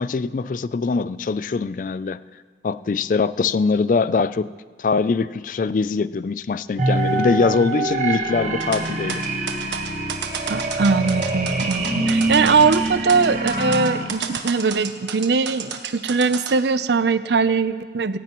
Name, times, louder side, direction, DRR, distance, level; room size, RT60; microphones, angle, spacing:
voice 1, 0.0-2.2 2.6-4.5 4.8-9.3, left 4 dB, 45° left, 16 dB, 0.3 m, -22 dB
sound 1, 6.8-14.0, right 2 dB, 40° right, 1.3 m, -25 dB
sound 2, 8.6-16.5, right 6 dB, 90° right, 1.3 m, -31 dB
voice 2, 10.5-18.2, right 4 dB, 75° right, 13 dB, 0.6 m, -21 dB
26.5 x 15.0 x 3.0 m, 1.5 s
head